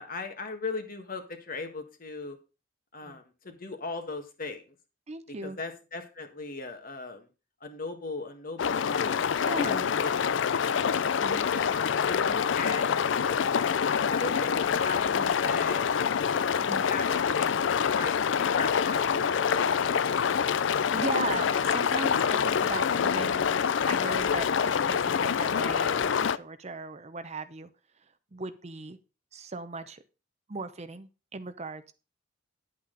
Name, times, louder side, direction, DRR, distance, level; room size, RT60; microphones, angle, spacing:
voice 1, 0.0-2.4 2.9-4.7 5.4-7.3 7.6-9.2 9.6-10.6 11.5-13.5 14.1-15.9 16.5-17.5 17.9-19.7, left 3 dB, 50° left, 6 dB, 1.6 m, -38 dB
voice 2, 5.1-5.6 9.4-9.9 11.2-11.5 15.1-15.4 16.7-16.8 20.7-23.5 23.8-27.7 28.3-29.0 29.3-30.0 30.5-31.9, right 3 dB, 35° right, 11 dB, 0.7 m, -38 dB
sound 1, 8.6-26.4, left 7 dB, 70° left, 0.4 m, -26 dB
10.0 x 8.4 x 3.9 m, 0.31 s
head